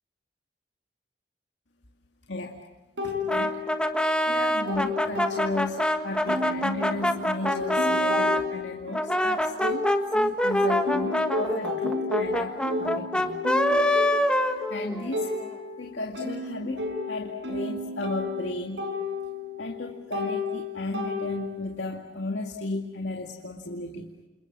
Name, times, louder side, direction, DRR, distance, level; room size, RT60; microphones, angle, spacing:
voice 1, 2.3-2.6 3.0-3.7 4.3-9.9 10.1-13.4 14.3-15.4 15.8-18.9 19.6-24.1, left 2 dB, 85° left, 2 dB, 2.3 m, -35 dB
sound 1, 3.0-4.1 4.4-5.9 6.3-10.3 10.6-21.7, left 3 dB, 90° right, 6.8 m, -32 dB
Brass instrument, 3.3-8.5 8.9-15.2, equal, 5° left, 1.4 m, -25 dB
29.0 x 28.5 x 6.3 m, 1.2 s
head